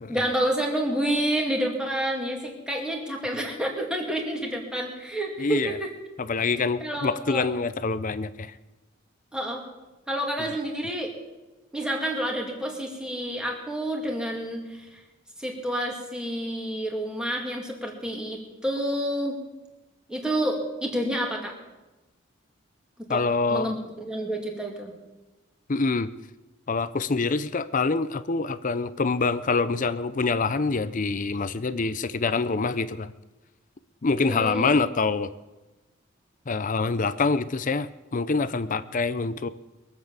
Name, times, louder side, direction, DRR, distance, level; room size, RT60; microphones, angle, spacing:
voice 1, 0.1-5.9 6.8-7.4 9.3-9.7 10.1-11.1 11.7-15.0 15.4-19.4 20.1-21.5 23.0-23.2 23.5-24.9 34.2-34.7, right 1 dB, 5° right, 0 dB, 2.5 m, -29 dB
voice 2, 5.4-5.8 6.2-8.6 10.4-10.5 23.1-23.7 25.7-26.1 26.7-33.1 34.0-35.3 36.5-39.5, left 4 dB, 40° left, 14 dB, 0.6 m, -26 dB
22.5 x 7.7 x 7.5 m, 1.1 s
head